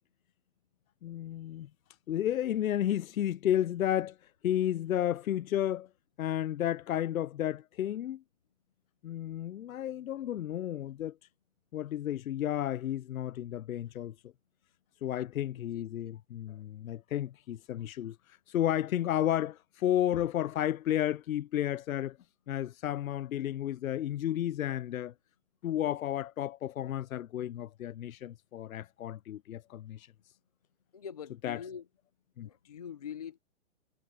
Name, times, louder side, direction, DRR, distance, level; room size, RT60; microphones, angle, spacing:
voice 1, 1.0-1.7 2.1-4.2 4.4-5.9 6.2-8.2 9.0-11.2 11.7-14.2 15.0-22.2 22.5-25.1 25.6-30.1 31.4-31.6 32.4-32.5, left 11 dB, 80° left, 0.7 m, -32 dB
voice 2, 30.9-31.9 32.4-33.4, left 8 dB, 30° left, 0.6 m, -43 dB
hypercardioid pair, 175°, 41 cm